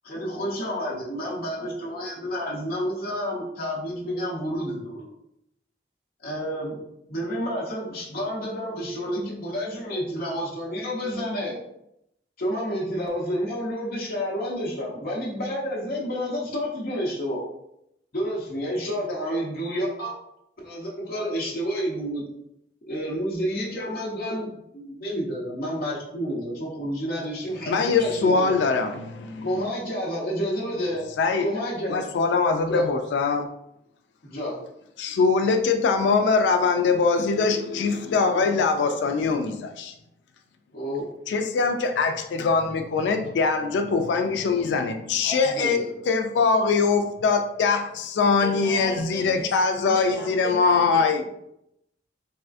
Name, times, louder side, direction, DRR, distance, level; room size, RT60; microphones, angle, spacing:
voice 1, 0.0-5.1 6.2-6.8 7.1-11.6 12.4-17.4 18.1-20.1 20.6-22.2 22.9-28.6 29.4-31.1 31.4-32.1 32.6-32.8 34.2-34.6 40.7-41.1 44.5-44.7 45.2-45.9, equal, 55° left, 0.7 m, -30 dB
voice 2, 27.7-29.5 31.2-31.5 31.9-33.5 35.0-39.9 41.3-51.2, left 4 dB, 90° left, 0.3 m, -22 dB
voice 3, 48.4-51.0, left 1 dB, 15° left, 0.8 m, -36 dB
3.5 x 2.4 x 2.4 m
head